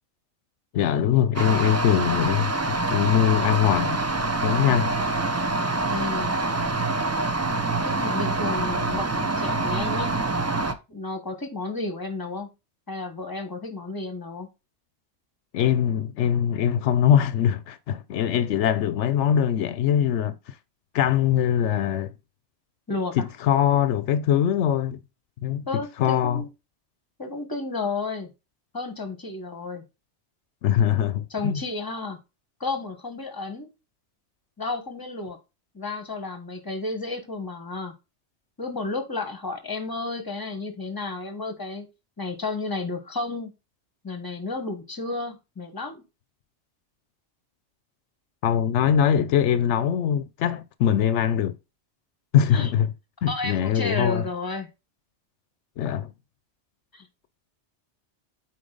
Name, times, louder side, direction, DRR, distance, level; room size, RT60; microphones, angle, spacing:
voice 1, 0.7-4.0 4.4-4.9 15.5-20.3 20.9-22.1 23.2-25.0 25.4-25.6 26.0-26.4 30.6-31.6 48.4-51.5 52.3-52.9 53.2-54.2 55.8-56.1, left 9 dB, 80° left, 0.9 m, -22 dB
sound 1, 1.4-10.7, right 2 dB, 25° right, 0.3 m, -26 dB
voice 2, 5.8-6.3 7.8-10.1 10.9-12.5 12.9-14.5 22.9-23.3 25.7-26.5 27.2-28.3 28.7-29.8 31.3-32.2 32.6-33.7 34.6-35.4 35.7-37.9 38.6-41.9 42.2-43.5 44.0-46.0 52.5-52.7 53.3-54.7 56.9-57.1, left 3 dB, 20° left, 1.3 m, -32 dB
8.7 x 4.2 x 3.9 m
omnidirectional pair, 1.2 m